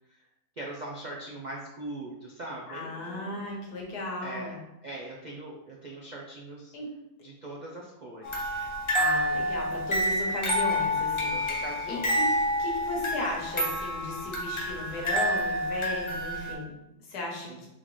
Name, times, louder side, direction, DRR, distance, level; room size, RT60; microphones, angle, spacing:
voice 1, 0.6-3.4 4.2-4.6 4.8-6.7 7.2-8.5 11.3-12.2 17.5-17.7, right 2 dB, 75° right, -3 dB, 0.4 m, -41 dB
voice 2, 2.7-4.6 6.7-6.9 8.9-12.3 12.6-17.7, left 2 dB, 80° left, -1 dB, 1.5 m, -36 dB
sound 1, 8.2-16.5, equal, 30° left, 0.5 m, -28 dB
3.8 x 3.8 x 3.1 m, 0.93 s
omnidirectional pair, 1.6 m